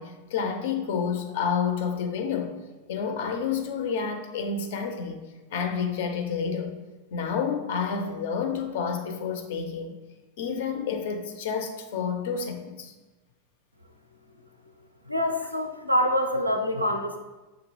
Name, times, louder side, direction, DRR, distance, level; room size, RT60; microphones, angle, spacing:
voice 1, 0.0-2.5 2.9-5.2 5.5-6.7 7.1-9.9 10.4-12.9, left 6 dB, 55° left, 5 dB, 0.5 m, -29 dB
voice 2, 15.1-17.2, left 1 dB, 85° right, 5 dB, 0.4 m, -25 dB
6.0 x 2.3 x 3.1 m, 1.2 s
figure-of-eight pair, 90°, 0 cm